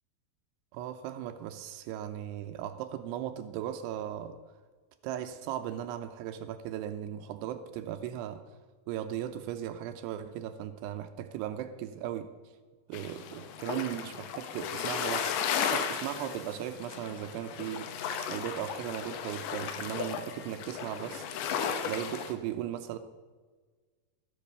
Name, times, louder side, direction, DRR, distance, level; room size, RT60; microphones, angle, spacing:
voice 1, 0.7-4.4 5.0-8.4 8.9-12.3 12.9-15.3 15.7-17.9 18.2-21.3 21.8-23.0, right 11 dB, 80° right, 2.5 m, -37 dB
sound 1, 12.9-22.3, left 7 dB, 85° left, 3.4 m, -35 dB
13.5 x 8.5 x 6.6 m
omnidirectional pair, 5.1 m